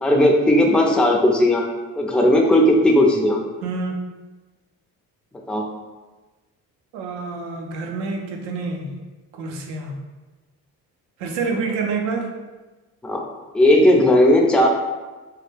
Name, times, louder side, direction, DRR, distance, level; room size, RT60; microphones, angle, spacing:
voice 1, 0.0-1.6 2.0-3.4 5.5-5.6 13.0-13.2 13.5-14.7, left 1 dB, 5° left, 0 dB, 0.3 m, -16 dB
voice 2, 3.6-4.0 6.9-8.9 9.4-9.9 11.2-12.3, right 4 dB, 80° right, 2 dB, 0.5 m, -27 dB
2.2 x 2.0 x 3.1 m, 1.2 s
hypercardioid pair, 55°, 42 cm